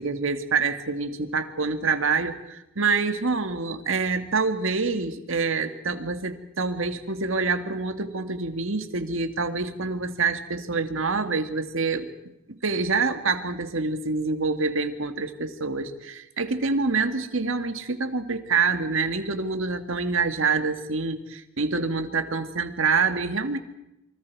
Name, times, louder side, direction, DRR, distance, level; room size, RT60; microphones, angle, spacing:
voice 1, 0.0-12.1 12.6-23.6, right 4 dB, 70° right, 8 dB, 1.8 m, -26 dB
28.5 x 24.5 x 4.7 m, 0.89 s
head